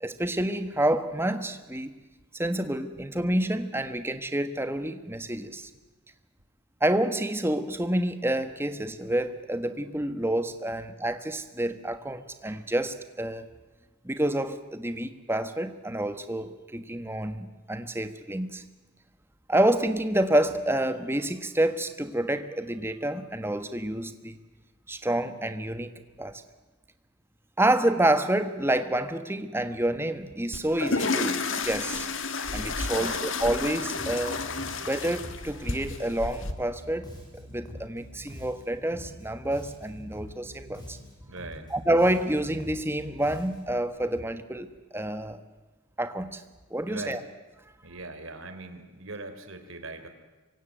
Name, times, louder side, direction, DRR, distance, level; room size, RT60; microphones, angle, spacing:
voice 1, 0.0-2.0 2.3-5.7 6.8-13.5 14.0-18.6 19.5-24.4 24.9-25.9 26.2-26.4 27.6-32.1 32.5-34.4 34.8-37.1 37.3-41.0 41.7-45.4 46.0-46.4 46.7-47.2, right 1 dB, 10° right, 10 dB, 1.4 m, -28 dB
sound 1, 30.5-36.5, left 4 dB, 55° left, 2.0 m, -31 dB
voice 2, 32.8-33.2 41.3-41.7 46.8-47.2 47.8-50.1, right 2 dB, 65° right, 7 dB, 3.6 m, -40 dB
Bass guitar, 33.9-43.8, equal, 20° left, 6.6 m, -45 dB
26.5 x 24.0 x 9.2 m, 1.2 s
head